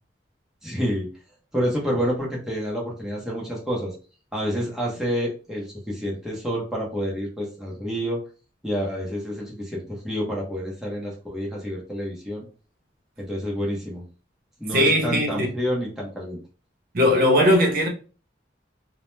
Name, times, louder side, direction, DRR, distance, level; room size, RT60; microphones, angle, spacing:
voice 1, 0.6-1.1 1.5-3.9 4.3-8.2 8.6-12.4 13.2-14.1 14.6-16.4, equal, 5° right, 0.6 m, -28 dB
voice 2, 14.7-15.5 16.9-17.9, equal, 50° right, 0.6 m, -19 dB
2.1 x 2.0 x 3.0 m
head